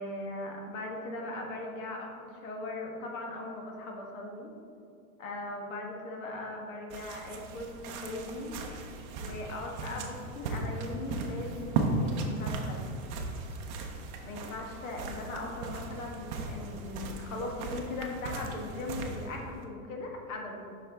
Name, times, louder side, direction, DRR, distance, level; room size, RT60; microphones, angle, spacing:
voice 1, 0.0-4.5 5.2-8.6 9.2-12.9 14.2-20.6, left 2 dB, 65° left, 0 dB, 1.4 m, -39 dB
sound 1, 6.9-19.6, right 3 dB, 35° right, 0.5 m, -37 dB
7.1 x 5.7 x 3.5 m, 2.5 s
supercardioid pair, 165°, 43 cm